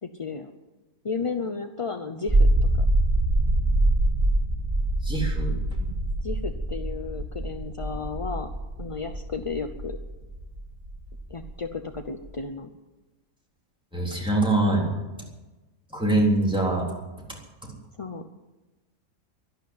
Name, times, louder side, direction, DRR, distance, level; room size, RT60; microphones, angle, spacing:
voice 1, 0.0-0.5 1.0-2.5 2.8-2.9 6.2-8.5 8.8-10.0 11.3-12.7 18.0-18.3, left 4 dB, 35° left, 7 dB, 0.5 m, -33 dB
sound 1, 2.3-12.4, right 1 dB, 25° right, 1.6 m, -25 dB
voice 2, 5.0-5.6 13.9-14.9 15.9-16.9, right 2 dB, 5° right, -3 dB, 3.6 m, -23 dB
12.5 x 12.0 x 9.4 m, 1.1 s
omnidirectional pair, 1.5 m